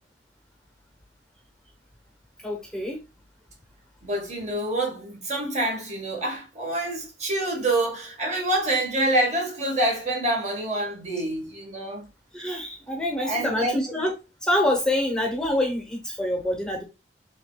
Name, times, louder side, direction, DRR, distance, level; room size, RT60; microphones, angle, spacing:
voice 1, 2.4-3.0 12.3-14.1 14.4-16.8, left 1 dB, 5° left, 0.9 m, -26 dB
voice 2, 4.0-12.0 13.2-13.8, right 1 dB, 40° right, 1.4 m, -26 dB
5.1 x 3.2 x 2.3 m
head